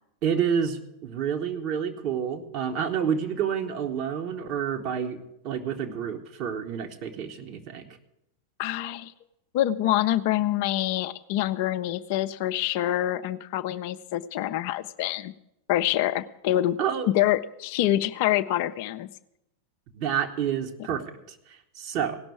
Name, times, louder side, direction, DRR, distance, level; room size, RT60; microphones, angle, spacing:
voice 1, 0.2-5.2 5.4-7.8 16.8-17.1 19.9-22.2, right 8 dB, 40° right, 5 dB, 1.2 m, -29 dB
voice 2, 8.6-9.1 9.5-15.3 15.7-16.8 17.1-19.1, left 13 dB, 50° left, 11 dB, 0.4 m, -26 dB
17.0 x 6.1 x 8.3 m, 0.85 s
figure-of-eight pair, 90°, 0 cm